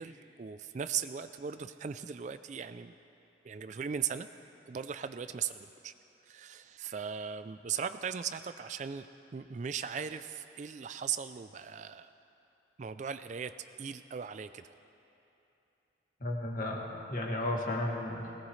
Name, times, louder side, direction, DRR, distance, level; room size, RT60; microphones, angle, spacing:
voice 1, 0.0-2.9 3.4-4.3 4.7-5.9 6.2-9.1 9.3-12.1 12.8-13.5 13.8-14.6, right 7 dB, 40° right, 11 dB, 0.3 m, -38 dB
voice 2, 16.2-18.3, left 1 dB, 45° left, -1 dB, 1.9 m, -34 dB
21.0 x 18.0 x 3.2 m, 2.9 s
head